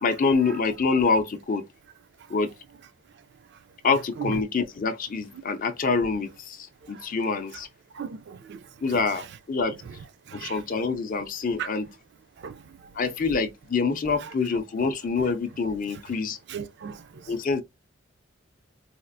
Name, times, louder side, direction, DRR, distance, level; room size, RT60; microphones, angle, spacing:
voice 1, 0.0-1.6 2.3-2.5 3.8-7.7 8.8-9.8 10.3-11.9 13.0-16.4 17.3-17.6, left 4 dB, 40° left, 0.4 m, -26 dB
voice 2, 8.0-8.6 10.3-10.6 11.6-11.7 12.4-12.5 16.5-17.0, right 7 dB, 55° right, 0.3 m, -35 dB
4.2 x 2.3 x 2.5 m
head